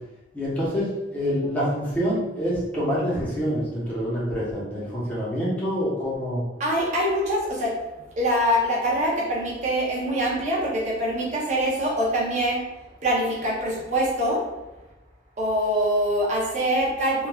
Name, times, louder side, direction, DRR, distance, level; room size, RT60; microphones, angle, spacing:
voice 1, 0.3-6.4, equal, 10° left, -8 dB, 0.7 m, -26 dB
voice 2, 6.6-7.8 8.2-12.7 13.0-14.4 15.4-17.3, equal, 40° right, -4 dB, 0.5 m, -24 dB
3.0 x 2.2 x 2.2 m, 1.0 s
head